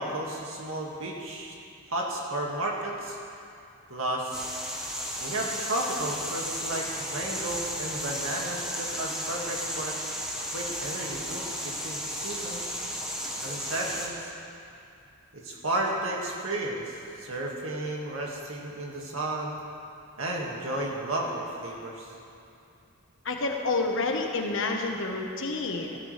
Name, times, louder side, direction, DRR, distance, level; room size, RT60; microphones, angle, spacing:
voice 1, 0.0-1.5 1.9-3.2 3.9-4.5 5.2-10.0 10.5-12.7 13.4-14.2 15.3-19.5 20.2-22.1, right 1 dB, 85° right, -2 dB, 2.0 m, -33 dB
sound 1, 4.3-14.1, equal, 5° right, 1.4 m, -34 dB
voice 2, 23.2-26.0, left 3 dB, 70° left, 2 dB, 1.3 m, -29 dB
16.5 x 12.5 x 3.3 m, 2.6 s
head